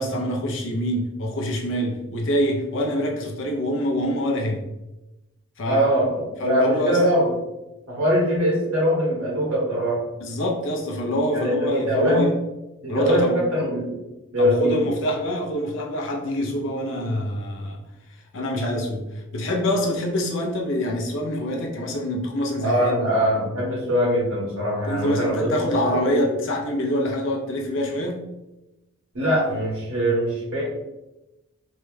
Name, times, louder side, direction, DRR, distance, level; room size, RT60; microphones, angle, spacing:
voice 1, 0.0-4.6 5.6-5.9 6.4-7.0 10.2-12.4 12.9-13.4 14.4-17.8 18.1-23.0 24.8-28.2, equal, 60° left, 0 dB, 0.5 m, -25 dB
voice 2, 5.7-7.4 7.9-10.0 11.3-12.3 12.8-14.0 14.3-14.8 22.6-26.2 29.1-30.6, equal, 85° right, -5 dB, 1.4 m, -22 dB
3.1 x 2.2 x 3.1 m, 0.97 s
head